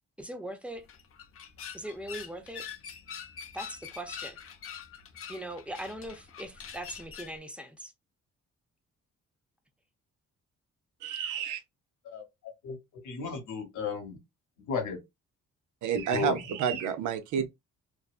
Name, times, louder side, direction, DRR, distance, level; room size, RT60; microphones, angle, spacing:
voice 1, 0.2-0.8 1.7-2.6 3.5-4.4 5.3-7.9, right 1 dB, 5° right, 0.6 m, -40 dB
sound 1, 0.7-7.4, left 7 dB, 50° left, 0.6 m, -44 dB
voice 2, 11.0-11.6 15.8-17.5, right 8 dB, 80° right, 0.6 m, -30 dB
voice 3, 13.0-14.2 14.7-15.0 16.1-16.4, left 5 dB, 75° left, 1.0 m, -33 dB
2.5 x 2.2 x 2.3 m
cardioid pair, 90°, 30 cm